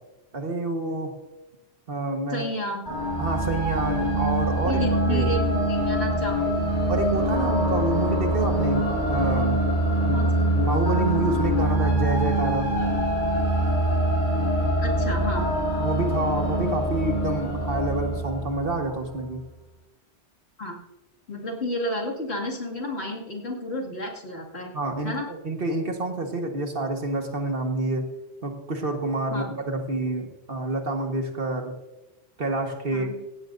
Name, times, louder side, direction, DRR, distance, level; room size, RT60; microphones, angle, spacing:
voice 1, 0.3-1.2 1.9-2.5 3.2-5.3 6.9-9.6 10.0-10.2 10.5-12.7 15.8-19.4 24.7-28.1 28.4-31.7 32.4-33.1, right 2 dB, 55° right, 4 dB, 1.6 m, -28 dB
voice 2, 2.3-2.8 4.6-6.6 10.1-10.3 14.8-15.5 20.6-20.8 21.3-24.7 25.0-25.3 29.3-29.5 32.9-33.1, left 1 dB, 65° left, -2 dB, 2.6 m, -31 dB
sound 1, 2.8-19.1, right 1 dB, 45° left, 5.2 m, -24 dB
17.0 x 16.0 x 2.6 m, 1.0 s
omnidirectional pair, 1.1 m